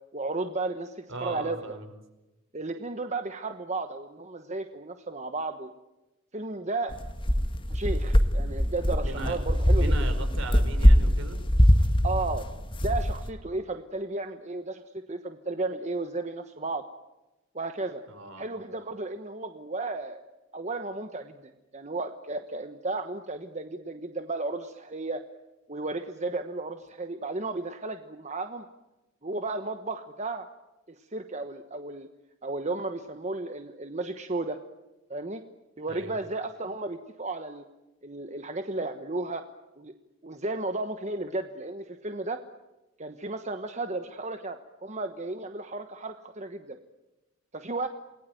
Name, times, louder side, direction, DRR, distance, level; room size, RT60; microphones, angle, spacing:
voice 1, 0.1-1.6 2.5-5.7 6.3-6.9 7.7-9.9 12.0-14.8 15.1-16.8 17.5-18.0 18.4-20.2 20.5-25.2 25.7-28.6 29.2-30.5 31.0-32.1 32.4-34.6 35.1-35.4 35.8-37.6 38.0-39.4 39.8-39.9 40.2-42.4 43.0-46.8 47.5-47.9, right 2 dB, 30° right, 7 dB, 1.2 m, -34 dB
voice 2, 1.1-1.9 9.0-9.4 9.7-11.4 18.1-18.4 35.9-36.2, right 2 dB, 60° right, 7 dB, 5.0 m, -38 dB
sound 1, 6.9-13.3, equal, 25° left, 1.8 m, -22 dB
29.0 x 20.5 x 9.2 m, 1.0 s
head